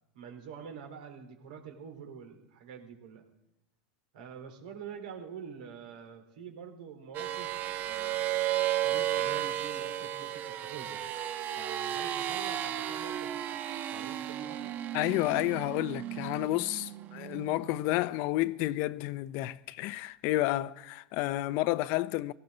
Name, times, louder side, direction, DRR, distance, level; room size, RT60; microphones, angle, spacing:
voice 1, 0.1-3.2 4.1-7.5 7.9-8.3 8.8-11.0 11.6-13.3 13.9-14.8, right 7 dB, 80° right, 3.8 m, -46 dB
sound 1, 7.1-18.0, right 12 dB, 40° right, 1.1 m, -34 dB
voice 2, 14.9-22.3, left 17 dB, 55° left, 0.6 m, -30 dB
17.5 x 17.0 x 4.0 m
supercardioid pair, 115°, 5 cm